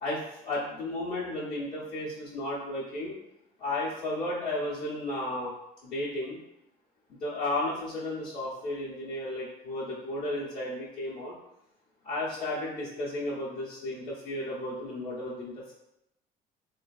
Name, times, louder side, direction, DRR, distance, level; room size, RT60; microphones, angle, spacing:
voice 1, 0.0-3.2 3.6-5.5 5.8-6.4 7.2-11.4 12.0-15.7, left 1 dB, 70° left, -9 dB, 0.8 m, -33 dB
3.1 x 2.3 x 2.4 m, 0.84 s
cardioid pair, 110°, 17 cm